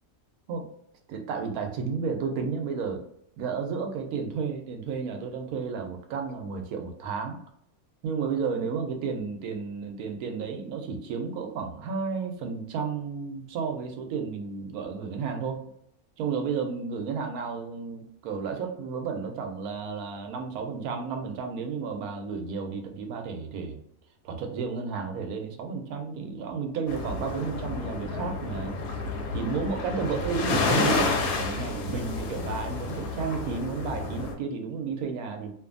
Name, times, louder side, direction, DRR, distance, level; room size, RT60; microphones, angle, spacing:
voice 1, 1.1-3.0 3.4-7.4 8.0-15.6 16.2-23.8 24.2-28.8 29.3-35.5, right 5 dB, 85° right, 4 dB, 1.1 m, -32 dB
sound 1, 26.9-34.3, left 3 dB, 85° left, 1.1 m, -30 dB
2.6 x 2.5 x 2.4 m, 0.71 s
omnidirectional pair, 1.5 m